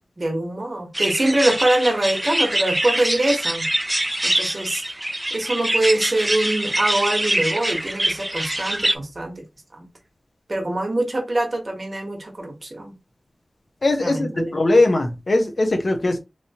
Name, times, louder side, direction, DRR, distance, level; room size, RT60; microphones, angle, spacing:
voice 1, 0.2-3.7 4.2-4.8 5.3-9.4 9.7-9.8 10.5-13.0 14.0-14.8, right 1 dB, 50° right, 1.0 m, -24 dB
sound 1, 0.9-8.9, right 1 dB, 20° right, 0.3 m, -24 dB
voice 2, 13.8-16.2, left 2 dB, 65° left, 0.8 m, -20 dB
3.1 x 2.8 x 2.8 m
cardioid pair, 45°, 0 cm